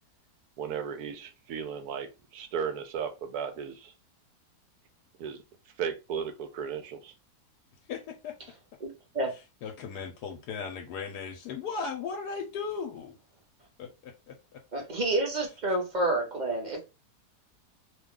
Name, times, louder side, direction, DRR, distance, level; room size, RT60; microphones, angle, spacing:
voice 1, 0.6-3.9 5.2-5.4 5.8-7.1, right 7 dB, 70° right, 8 dB, 1.0 m, -35 dB
voice 2, 7.9-8.3 9.6-13.2 13.8-14.6, left 5 dB, 80° left, 3 dB, 1.2 m, -37 dB
voice 3, 8.8-9.3 14.7-16.8, right 2 dB, 35° right, 1 dB, 0.9 m, -29 dB
2.8 x 2.3 x 3.6 m, 0.27 s
omnidirectional pair, 1.8 m